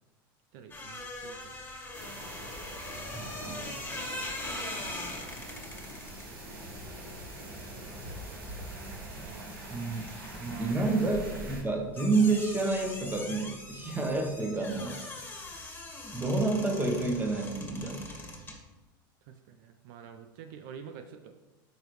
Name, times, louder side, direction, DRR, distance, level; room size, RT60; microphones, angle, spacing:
voice 1, 0.5-1.6 9.2-9.6 10.4-10.9 19.3-21.4, right 7 dB, 65° right, 7 dB, 0.6 m, -48 dB
sound 1, 0.7-8.8 9.1-18.6, left 2 dB, 15° left, 1.7 m, -42 dB
sound 2, 1.9-11.6, right 1 dB, 90° right, 2.3 m, -43 dB
voice 2, 3.1-3.8 9.7-10.0 10.4-15.0 16.1-18.1, right 3 dB, 15° right, 2 dB, 1.4 m, -29 dB
8.8 x 5.0 x 3.2 m, 1.1 s
hypercardioid pair, 100°, 12 cm